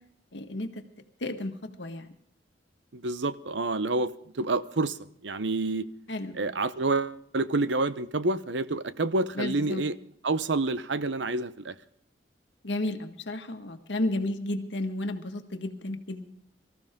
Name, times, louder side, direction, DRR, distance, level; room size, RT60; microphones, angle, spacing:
voice 1, 0.3-0.8 1.2-2.1 6.1-6.4 9.4-9.8 12.6-16.3, left 1 dB, 80° left, 1.6 m, -32 dB
voice 2, 2.9-5.0 5.2-5.9 6.3-10.0 10.2-11.7, right 3 dB, 85° right, 0.9 m, -28 dB
24.0 x 14.5 x 3.7 m
head